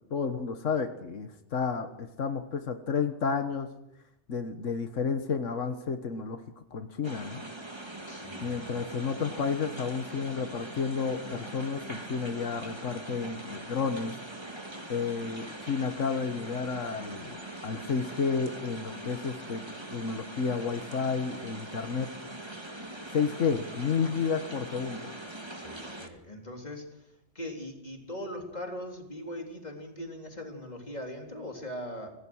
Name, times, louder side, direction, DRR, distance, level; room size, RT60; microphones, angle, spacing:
voice 1, 0.1-3.7 4.3-6.4 6.7-7.4 8.4-14.1 14.9-19.6 19.9-22.1 23.1-25.1, left 5 dB, 90° left, 7 dB, 1.6 m, -31 dB
sound 1, 7.0-26.1, right 1 dB, 20° right, 2.1 m, -42 dB
voice 2, 8.1-8.7 25.5-27.1 27.4-32.1, equal, 35° left, 2 dB, 3.8 m, -40 dB
26.0 x 17.0 x 6.3 m, 0.82 s
omnidirectional pair, 1.2 m